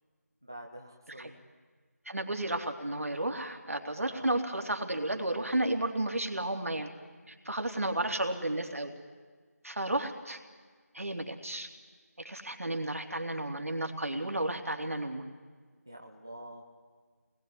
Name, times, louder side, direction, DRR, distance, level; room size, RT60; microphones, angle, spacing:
voice 1, 0.4-1.4 4.1-4.3 7.9-8.2 15.9-16.6, right 1 dB, 15° right, 1 dB, 0.7 m, -47 dB
voice 2, 2.0-6.9 7.3-8.9 9.6-10.4 10.9-11.7 12.2-15.2, right 1 dB, 55° right, 4 dB, 3.0 m, -32 dB
25.5 x 20.5 x 9.7 m, 1.5 s
figure-of-eight pair, 180°, 9 cm